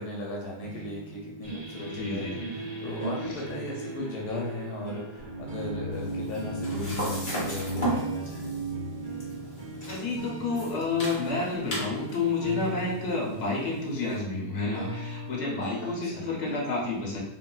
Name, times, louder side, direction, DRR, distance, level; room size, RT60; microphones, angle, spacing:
voice 1, 0.0-8.5 16.0-16.3, left 2 dB, 75° left, -2 dB, 1.1 m, -37 dB
sound 1, 0.6-16.6, right 2 dB, 85° right, 1.5 m, -41 dB
sound 2, 1.4-10.8, right 2 dB, 50° right, 1.3 m, -37 dB
voice 2, 1.9-2.6 9.9-17.2, left 3 dB, 55° left, -3 dB, 0.9 m, -30 dB
sound 3, 5.9-14.2, right 1 dB, 35° left, 1.1 m, -37 dB
3.1 x 2.6 x 2.2 m, 0.85 s
omnidirectional pair, 1.8 m